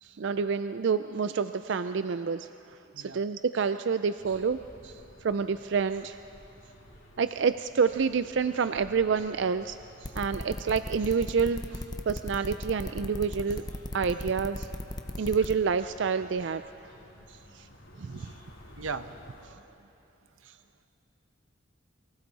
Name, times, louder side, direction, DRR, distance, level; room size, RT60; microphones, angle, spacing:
voice 1, 0.0-2.5 3.0-4.9 5.2-6.2 7.2-9.8 10.2-13.6 13.9-14.7 15.2-16.6 17.5-17.6 18.0-18.3 19.5-19.6, right 5 dB, 60° right, 11 dB, 0.4 m, -28 dB
sound 1, 4.2-19.5, equal, 75° left, 3.4 m, -54 dB
sound 2, 10.0-15.5, left 1 dB, 20° left, 0.8 m, -36 dB
voice 2, 18.8-19.2, right 4 dB, 90° right, 10 dB, 0.9 m, -38 dB
29.5 x 24.0 x 4.1 m, 3.0 s
head